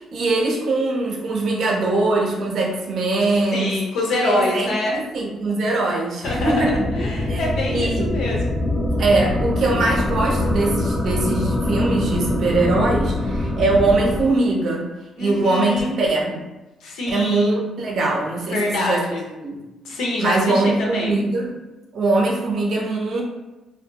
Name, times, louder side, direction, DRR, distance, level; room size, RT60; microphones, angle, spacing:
voice 1, 0.0-3.7 4.2-6.9 7.3-7.4 7.7-8.1 9.0-14.9 15.2-16.5 17.1-19.0 19.4-19.6 20.2-21.6 21.9-23.2, right 2 dB, 65° right, -1 dB, 0.6 m, -22 dB
voice 2, 3.5-5.0 6.2-6.6 6.9-8.5 15.2-15.9 16.8-17.5 18.5-19.2 19.8-21.1, left 2 dB, 80° left, -2 dB, 0.7 m, -25 dB
sound 1, 6.2-14.2, left 1 dB, 20° left, 0.5 m, -23 dB
2.6 x 2.4 x 2.2 m, 1.1 s
cardioid pair, 80°, 0 cm